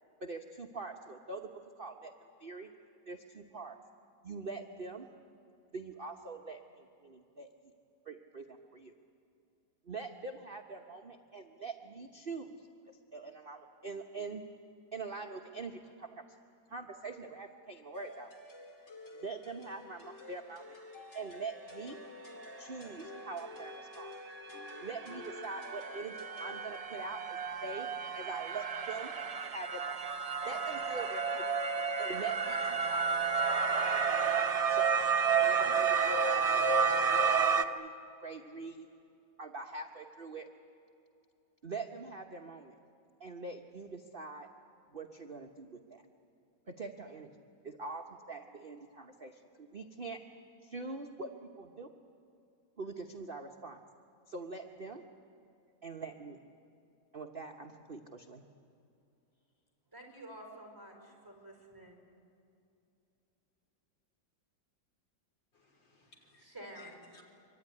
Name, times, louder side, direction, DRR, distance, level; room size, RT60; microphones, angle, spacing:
voice 1, 0.2-1.5 1.8-2.7 3.1-3.8 4.2-5.1 5.7-7.5 8.0-8.9 9.8-14.4 14.9-16.4 16.7-18.3 19.2-20.8 21.1-22.0 22.6-24.2 24.8-27.9 28.1-29.1 29.5-30.0 30.4-31.6 32.0-33.9 34.7-35.0 35.3-37.9 38.2-38.9 39.4-40.5 41.6-42.7 43.2-44.5 44.9-46.0 46.7-47.3 47.6-50.2 50.6-51.9 52.8-53.8 54.3-55.0 55.8-56.4 57.1-58.4, right 3 dB, 35° right, 3 dB, 1.0 m, -44 dB
sound 1, 17.9-26.8, left 2 dB, 35° left, 2.6 m, -50 dB
sound 2, 23.1-23.2 23.6-37.6, right 5 dB, 65° right, 0.3 m, -31 dB
voice 2, 59.9-62.0 66.4-67.0, right 1 dB, 10° right, 1 dB, 4.9 m, -50 dB
voice 3, 65.5-67.2, left 4 dB, 80° left, 2 dB, 4.3 m, -59 dB
24.5 x 24.0 x 9.7 m, 2.7 s
omnidirectional pair, 2.0 m